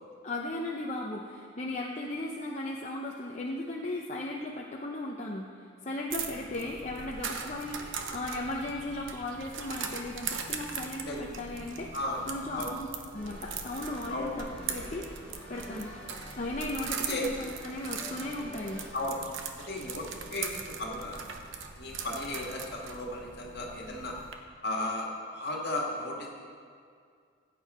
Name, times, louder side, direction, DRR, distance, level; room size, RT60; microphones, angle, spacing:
voice 1, 0.2-11.9 12.3-12.9 13.1-15.0 15.5-15.9 16.4-18.8, left 1 dB, 35° left, -1 dB, 0.7 m, -36 dB
sound 1, 6.1-24.3, right 6 dB, 75° right, 0.9 m, -40 dB
voice 2, 11.9-12.3 12.5-12.7 14.1-14.3 17.1-17.3 18.9-19.3 19.7-21.2 21.8-24.2 24.6-26.3, left 1 dB, 55° left, -1 dB, 2.0 m, -35 dB
sound 2, 13.1-18.9, equal, 5° left, 3.3 m, -46 dB
15.5 x 8.4 x 4.3 m, 2.2 s
head